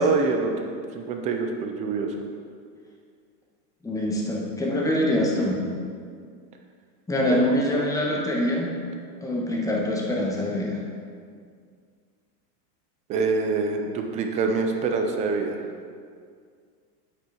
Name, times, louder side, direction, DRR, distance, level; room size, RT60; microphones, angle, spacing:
voice 1, 0.0-2.2 7.3-7.4 13.1-15.6, right 4 dB, 15° right, 4 dB, 0.3 m, -25 dB
voice 2, 3.8-5.6 7.1-8.7 9.2-10.8, left 1 dB, 5° left, -3 dB, 1.4 m, -24 dB
8.4 x 8.1 x 4.3 m, 2.1 s
supercardioid pair, 135°, 47 cm